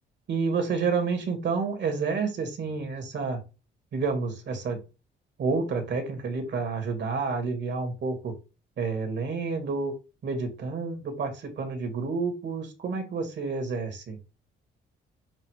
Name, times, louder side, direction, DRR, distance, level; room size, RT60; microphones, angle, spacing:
voice 1, 0.3-3.4 3.9-4.8 5.4-8.3 8.8-9.9 10.2-14.2, right 4 dB, 60° right, 6 dB, 2.1 m, -29 dB
7.4 x 2.7 x 5.0 m, 0.29 s
cardioid pair, 90°, 20 cm